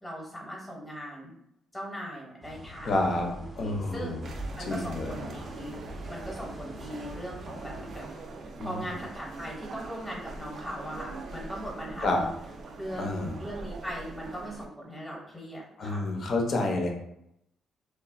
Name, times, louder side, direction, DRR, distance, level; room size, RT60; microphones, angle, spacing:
voice 1, 0.0-1.3 1.7-5.8 6.1-8.0 8.6-12.3 12.8-16.0, equal, 5° left, -3 dB, 0.9 m, -40 dB
sound 1, 2.4-8.0, right 1 dB, 15° right, 0.6 m, -43 dB
voice 2, 2.8-3.3 3.6-4.3 4.6-5.2 8.6-8.8 12.0-12.2 13.0-13.4 15.8-16.9, left 2 dB, 55° left, 1 dB, 0.6 m, -29 dB
sound 2, 4.2-14.7, right 3 dB, 60° right, 0.4 m, -43 dB
3.1 x 2.2 x 2.4 m, 0.78 s
cardioid pair, 90°, 0 cm